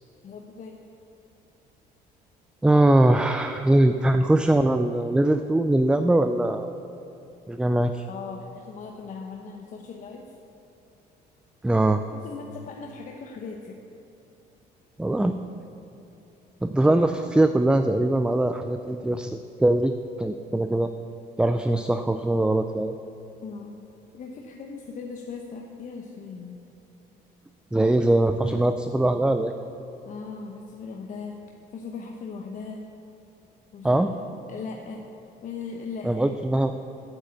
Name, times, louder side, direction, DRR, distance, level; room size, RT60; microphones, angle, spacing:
voice 1, 0.2-0.8 8.1-10.2 12.1-13.8 23.4-23.8 24.1-26.6 30.1-31.4 31.7-32.8 33.7-34.2 34.5-35.0 35.4-36.3, left 5 dB, 50° left, 1 dB, 0.9 m, -38 dB
voice 2, 2.6-6.7 7.5-8.1 11.6-12.0 15.0-15.3 16.6-19.9 20.2-20.9 21.4-22.9 27.7-29.5 33.8-34.1 36.0-36.7, right 1 dB, 5° right, 8 dB, 0.4 m, -21 dB
8.6 x 7.7 x 8.2 m, 2.9 s
cardioid pair, 110°, 17 cm